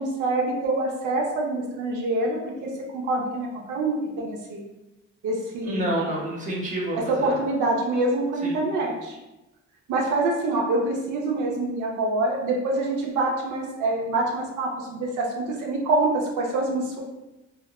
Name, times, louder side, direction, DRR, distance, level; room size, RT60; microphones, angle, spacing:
voice 1, 0.0-4.6 5.2-5.9 7.1-9.2 9.9-17.0, right 2 dB, 80° right, -1 dB, 0.5 m, -26 dB
voice 2, 5.6-7.4 8.4-8.6, right 1 dB, 25° right, -3 dB, 0.7 m, -28 dB
3.0 x 2.0 x 2.2 m, 1.0 s
cardioid pair, 90°, 30 cm